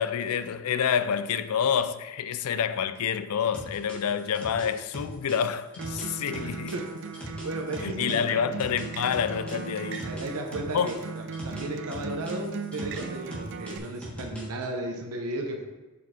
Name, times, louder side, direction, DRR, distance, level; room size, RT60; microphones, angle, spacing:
voice 1, 0.0-6.7 7.8-10.1 10.7-10.9, left 7 dB, 80° left, 0.4 m, -28 dB
sound 1, 3.5-8.2 8.6-11.6 11.9-14.6, right 1 dB, 5° left, 1.6 m, -40 dB
Acoustic guitar, 5.8-13.8, right 4 dB, 55° right, 0.5 m, -38 dB
voice 2, 6.3-8.4 10.0-15.6, right 1 dB, 80° right, 0.9 m, -35 dB
7.4 x 4.2 x 4.3 m
head